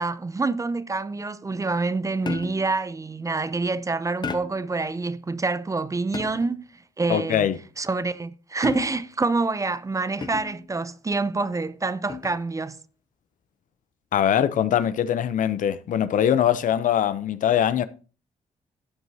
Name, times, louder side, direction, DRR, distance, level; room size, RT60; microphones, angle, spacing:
voice 1, 0.0-6.6 7.0-7.5 7.8-12.8, right 3 dB, 25° right, 0.6 m, -27 dB
sound 1, 2.3-2.8 4.2-4.7 6.1-6.6 8.6-9.2 10.2-10.7 12.1-12.5, left 5 dB, 30° left, 1.0 m, -34 dB
voice 2, 7.1-7.6 14.1-17.9, left 10 dB, 70° left, 0.7 m, -22 dB
13.0 x 7.9 x 2.8 m
cardioid pair, 75°, 14 cm